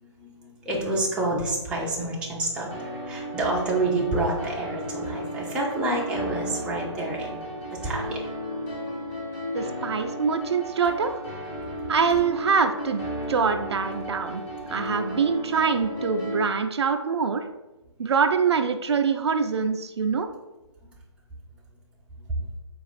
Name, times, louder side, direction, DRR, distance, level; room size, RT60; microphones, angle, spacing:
voice 1, 0.0-8.2, right 2 dB, 5° right, -4 dB, 0.5 m, -28 dB
sound 1, 2.7-16.4, equal, 20° left, 0.8 m, -34 dB
voice 2, 9.5-11.2 11.9-13.0 13.3-14.4 14.7-17.4 18.0-20.3, right 5 dB, 60° right, 7 dB, 0.4 m, -24 dB
4.2 x 2.4 x 4.0 m, 1.0 s
figure-of-eight pair, 140°, 16 cm